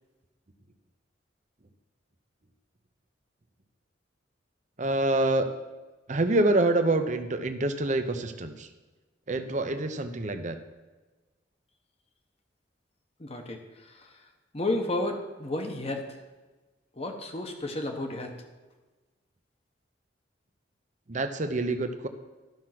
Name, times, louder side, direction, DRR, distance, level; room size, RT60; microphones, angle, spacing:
voice 1, 4.8-5.5 6.1-8.7 9.3-10.6 21.1-22.1, right 2 dB, 40° right, 8 dB, 0.8 m, -26 dB
voice 2, 13.2-13.6 13.9-14.1 14.5-16.2 17.0-18.3, left 2 dB, 35° left, 4 dB, 1.2 m, -32 dB
12.0 x 6.2 x 6.0 m, 1.2 s
head